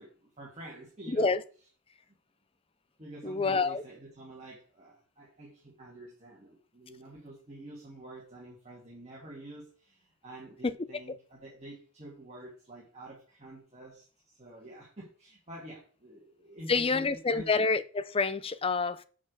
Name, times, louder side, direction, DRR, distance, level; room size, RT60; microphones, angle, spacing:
voice 1, 0.0-1.3 3.0-17.6, right 1 dB, 30° right, 2.1 m, -48 dB
voice 2, 1.1-1.4 3.2-3.8 10.6-10.7 16.7-19.0, left 4 dB, 25° left, 0.5 m, -27 dB
6.1 x 5.9 x 6.3 m
head